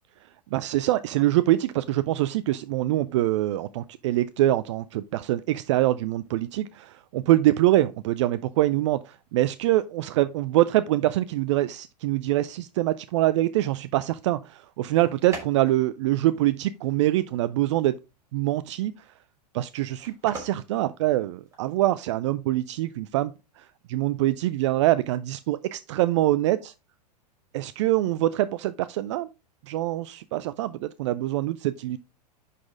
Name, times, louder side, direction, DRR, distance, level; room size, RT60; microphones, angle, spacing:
voice 1, 0.5-18.0 18.3-19.1 19.5-26.7 27.5-29.3 29.6-32.0, right 15 dB, 45° right, 0.4 m, -24 dB
sound 1, 14.7-21.8, right 3 dB, 15° right, 3.3 m, -45 dB
10.5 x 4.2 x 3.6 m
figure-of-eight pair, 100°, 21 cm